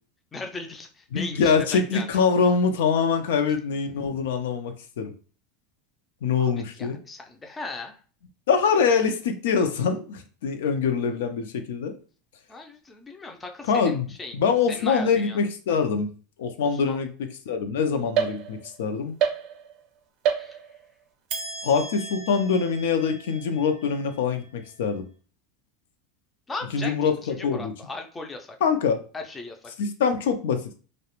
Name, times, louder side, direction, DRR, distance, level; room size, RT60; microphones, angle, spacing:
voice 1, 0.3-2.1 6.4-6.5 6.8-8.0 12.5-14.3 14.7-15.4 16.7-17.0 20.4-20.6 26.5-28.6 29.1-29.7, left 3 dB, 15° left, 4 dB, 0.4 m, -38 dB
voice 2, 1.1-5.1 6.2-7.0 8.5-11.9 13.7-14.1 14.3-16.1 16.4-19.2 21.6-25.0 26.7-27.7 28.6-29.0 29.8-30.8, left 5 dB, 85° left, 7 dB, 0.4 m, -24 dB
sound 1, 18.2-18.8 19.2-19.9 20.2-20.9 21.3-24.8, right 8 dB, 50° right, 0.4 m, -31 dB
2.3 x 2.1 x 2.9 m, 0.38 s
supercardioid pair, 135°, 0 cm